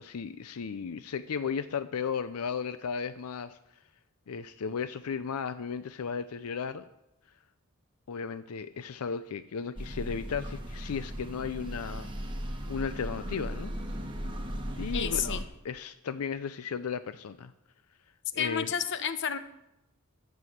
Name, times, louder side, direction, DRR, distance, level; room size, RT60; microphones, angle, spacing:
voice 1, 0.0-3.6 4.3-6.8 8.1-12.1 12.7-13.7 14.8-15.4 15.6-17.5 18.3-18.7, left 6 dB, 85° left, 12 dB, 0.5 m, -35 dB
sound 1, 9.8-15.4, equal, 20° right, 1.4 m, -37 dB
voice 2, 14.9-15.4 18.3-19.4, left 8 dB, 55° left, 12 dB, 0.8 m, -30 dB
11.0 x 7.0 x 7.8 m, 0.88 s
head